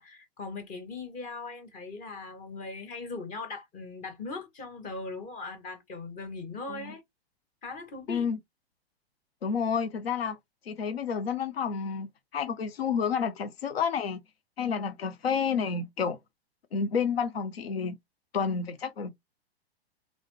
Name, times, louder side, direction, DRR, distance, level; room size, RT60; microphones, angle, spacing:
voice 1, 0.0-7.0 7.6-8.2, left 3 dB, 25° left, 1.1 m, -39 dB
voice 2, 9.4-10.4 10.7-14.2 14.6-16.2 16.7-18.0 18.3-19.1, left 6 dB, 70° left, 0.6 m, -30 dB
3.1 x 2.6 x 3.0 m
figure-of-eight pair, 105°, 32 cm